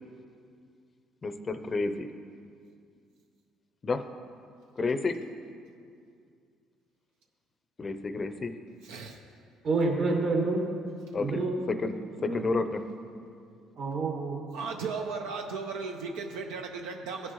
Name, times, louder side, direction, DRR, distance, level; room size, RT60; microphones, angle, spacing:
voice 1, 1.2-2.1 3.8-4.0 4.8-5.2 7.8-8.5 11.1-11.4 11.7-11.9 12.2-12.8, left 3 dB, 35° left, 9 dB, 0.5 m, -30 dB
voice 2, 8.8-9.2 14.5-17.3, right 4 dB, 90° right, 3 dB, 0.5 m, -36 dB
voice 3, 9.6-10.7 11.2-11.6 12.2-12.4 13.8-14.4, right 3 dB, 65° right, -1 dB, 1.9 m, -28 dB
15.0 x 6.3 x 3.1 m, 2.3 s
supercardioid pair, 85°, 0 cm